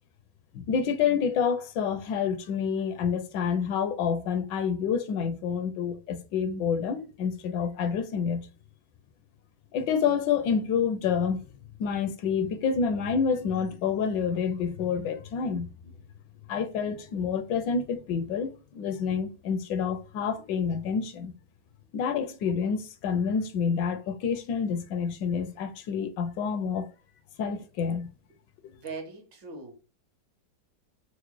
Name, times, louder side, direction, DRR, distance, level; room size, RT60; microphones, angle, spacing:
voice 1, 0.5-8.5 9.7-11.4 11.8-15.7 16.5-18.5 18.7-21.3 21.9-26.9 27.4-28.1, left 6 dB, 80° left, 1.2 m, -28 dB
voice 2, 28.7-29.7, right 4 dB, 75° right, 1.7 m, -41 dB
4.6 x 2.1 x 3.0 m
omnidirectional pair, 2.0 m